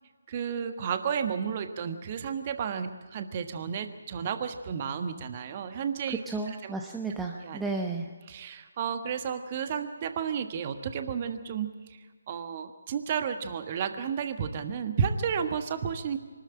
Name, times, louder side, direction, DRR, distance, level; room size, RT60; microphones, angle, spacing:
voice 1, 0.3-6.2 6.6-6.7 7.4-7.6 8.3-16.2, right 7 dB, 35° right, 8 dB, 1.5 m, -32 dB
voice 2, 6.1-8.1, right 3 dB, 5° right, 1 dB, 1.0 m, -33 dB
24.0 x 13.0 x 8.8 m, 1.5 s
figure-of-eight pair, 150°, 0 cm